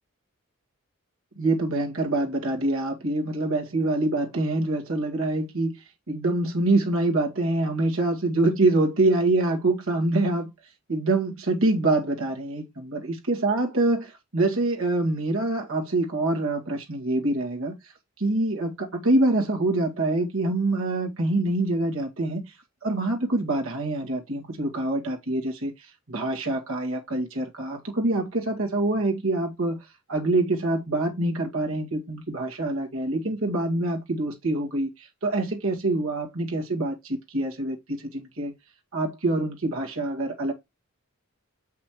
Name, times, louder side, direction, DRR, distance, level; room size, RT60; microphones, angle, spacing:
voice 1, 1.4-5.8 6.1-10.5 10.9-17.7 18.2-22.4 22.8-25.7 26.1-29.8 30.1-38.5 38.9-40.5, right 2 dB, 75° right, 2.1 m, -25 dB
7.4 x 5.8 x 3.1 m
head